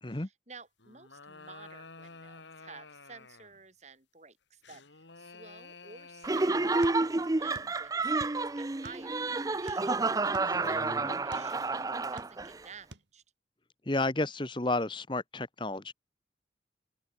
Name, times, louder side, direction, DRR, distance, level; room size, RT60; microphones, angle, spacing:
voice 1, 0.1-13.2, right 4 dB, 40° right, 7.3 m, -53 dB
sound 1, 0.8-3.6 4.6-7.2, left 3 dB, 80° left, 3.3 m, -51 dB
Laughter, 6.2-12.6, right 3 dB, 20° right, 0.5 m, -30 dB
sound 2, 6.8-7.8 8.0-9.2 9.6-11.5 12.0-12.6 12.9-13.1, right 1 dB, 75° right, 4.0 m, -49 dB
voice 2, 10.5-11.2 13.9-15.9, left 2 dB, 25° left, 1.2 m, -32 dB
open air
head